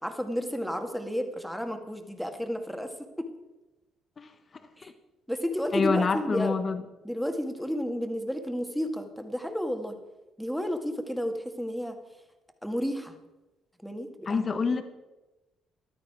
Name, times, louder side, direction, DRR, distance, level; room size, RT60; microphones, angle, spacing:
voice 1, 0.0-3.3 4.8-4.9 5.3-6.5 7.0-10.0 10.4-12.0 12.6-13.1 13.8-14.4, equal, ahead, 6 dB, 2.1 m, -32 dB
voice 2, 5.7-6.8 14.3-14.8, left 4 dB, 40° left, 10 dB, 1.3 m, -26 dB
14.5 x 12.0 x 4.7 m, 1.0 s
hypercardioid pair, 45°, 0 cm